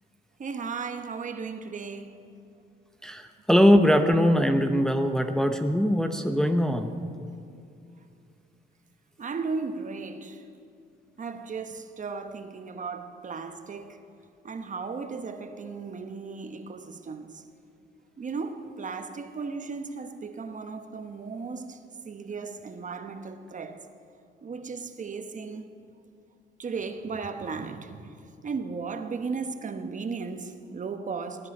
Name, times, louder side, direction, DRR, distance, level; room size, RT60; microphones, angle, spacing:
voice 1, 0.4-2.2 9.2-10.4 11.2-14.0 14.4-17.4 18.2-21.8 22.0-23.9 24.4-25.6 26.6-31.5, right 4 dB, 40° right, 8 dB, 1.0 m, -36 dB
voice 2, 3.0-6.9, equal, 5° left, 6 dB, 0.8 m, -21 dB
19.0 x 9.4 x 5.4 m, 2.6 s
cardioid pair, 90°, 20 cm